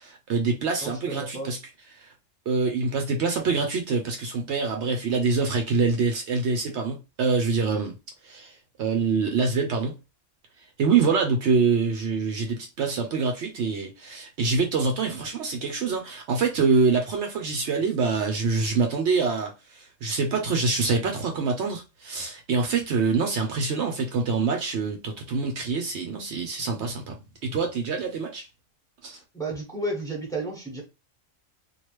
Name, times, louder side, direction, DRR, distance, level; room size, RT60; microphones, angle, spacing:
voice 1, 0.0-1.6 2.0-2.1 2.5-7.9 8.2-8.5 8.8-9.9 10.8-28.5 29.0-29.2, right 4 dB, 70° right, 0.9 m, -25 dB
voice 2, 0.8-1.5 29.3-30.8, right 2 dB, 5° left, 1.0 m, -32 dB
3.1 x 2.4 x 3.1 m
omnidirectional pair, 1.3 m